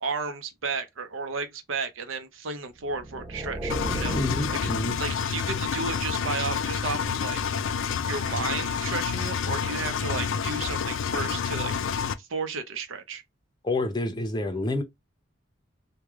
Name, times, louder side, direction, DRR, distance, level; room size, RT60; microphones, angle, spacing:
voice 1, 0.0-4.2 4.5-4.7 5.0-7.4 8.0-13.2, right 4 dB, 85° right, 0.7 m, -33 dB
sound 1, 2.8-5.8, right 1 dB, 5° right, 0.9 m, -35 dB
Engine, 3.7-12.1, left 6 dB, 80° left, 0.4 m, -29 dB
voice 2, 4.1-5.0 13.6-14.8, left 2 dB, 20° left, 0.6 m, -28 dB
3.3 x 2.2 x 3.5 m
head